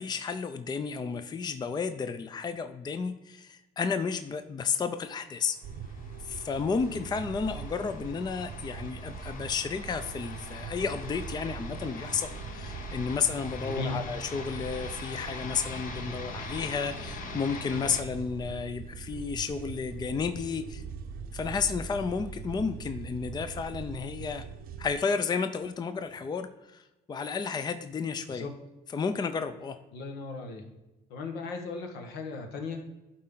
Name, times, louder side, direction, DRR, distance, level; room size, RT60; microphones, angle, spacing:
voice 1, 0.0-5.6 6.2-20.8 21.3-24.4 24.8-28.4 28.9-29.8, left 5 dB, 25° left, 9 dB, 0.5 m, -32 dB
sound 1, 5.5-18.0, left 4 dB, 55° left, 1.2 m, -43 dB
sound 2, 5.6-24.9, right 5 dB, 60° right, 0.8 m, -42 dB
voice 2, 13.6-14.0 28.3-28.5 29.9-30.6 31.1-32.9, left 3 dB, 80° left, 3 dB, 1.5 m, -37 dB
11.5 x 4.4 x 3.9 m, 1.0 s
cardioid pair, 110°, 17 cm